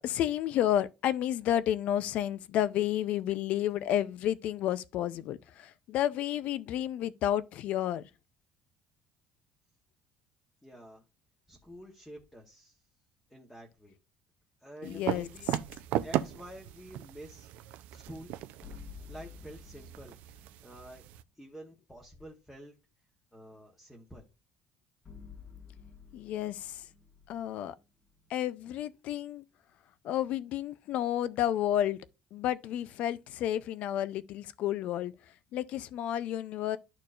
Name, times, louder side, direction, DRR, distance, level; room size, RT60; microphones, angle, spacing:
voice 1, 0.0-8.0 14.8-15.3 26.1-26.8 27.3-27.8 28.3-29.4 30.0-32.1 32.3-35.1 35.5-36.8, left 11 dB, 60° left, 0.5 m, -31 dB
voice 2, 10.6-11.0 11.5-12.8 13.3-14.0 14.6-15.6 16.0-17.5 17.9-18.3 19.1-20.2 20.6-21.0 21.4-22.7 23.3-24.3, equal, 5° left, 1.1 m, -48 dB
sound 1, 14.8-21.2, right 13 dB, 75° right, 0.5 m, -37 dB
sound 2, 18.6-20.8 25.0-28.3, left 6 dB, 30° left, 1.7 m, -51 dB
12.0 x 4.5 x 2.5 m
cardioid pair, 155°, 3 cm